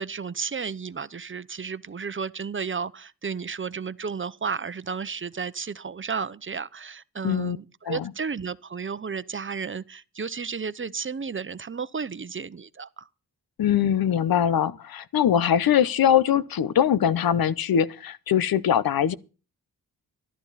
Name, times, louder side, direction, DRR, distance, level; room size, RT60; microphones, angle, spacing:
voice 1, 0.0-13.1, right 5 dB, 35° right, 0.8 m, -33 dB
voice 2, 7.2-7.6 7.8-8.1 13.6-19.1, left 9 dB, 80° left, 0.9 m, -22 dB
14.5 x 12.5 x 4.1 m
cardioid pair, 70°, 35 cm